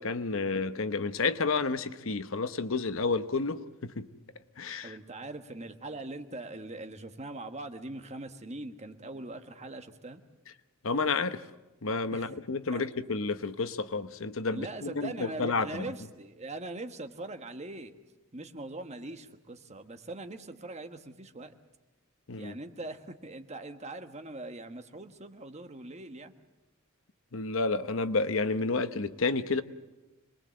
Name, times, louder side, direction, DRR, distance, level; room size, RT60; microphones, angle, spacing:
voice 1, 0.0-4.1 4.6-5.0 10.8-11.4 11.8-15.9 22.3-22.6 27.3-29.6, left 3 dB, 65° left, 0.9 m, -30 dB
voice 2, 4.8-10.2 12.1-12.3 12.7-12.8 14.5-17.9 18.3-21.5 22.4-26.3, right 2 dB, 30° right, 1.3 m, -41 dB
26.5 x 21.0 x 7.6 m
head